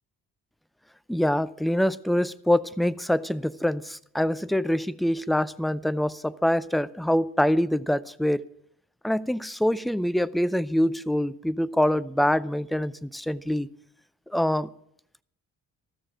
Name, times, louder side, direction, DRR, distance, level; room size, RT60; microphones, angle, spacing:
voice 1, 1.1-8.4 9.0-13.7 14.3-14.7, left 1 dB, ahead, 0.4 m, -25 dB
13.5 x 6.6 x 9.0 m
hypercardioid pair, 45°, 43 cm